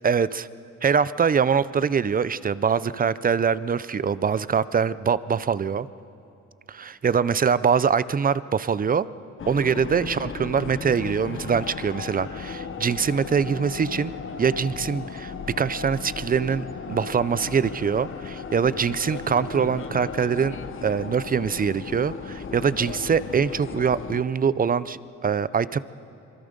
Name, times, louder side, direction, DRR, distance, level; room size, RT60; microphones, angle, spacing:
voice 1, 0.0-0.5 0.8-5.9 6.7-9.1 9.5-14.1 14.4-20.6 20.8-25.8, right 6 dB, 30° right, 17 dB, 0.6 m, -23 dB
Tube Stopping At London Bridge, 9.4-24.2, left 6 dB, 40° left, 1.0 m, -36 dB
26.0 x 23.0 x 5.2 m, 2.7 s
cardioid pair, 90°, 30 cm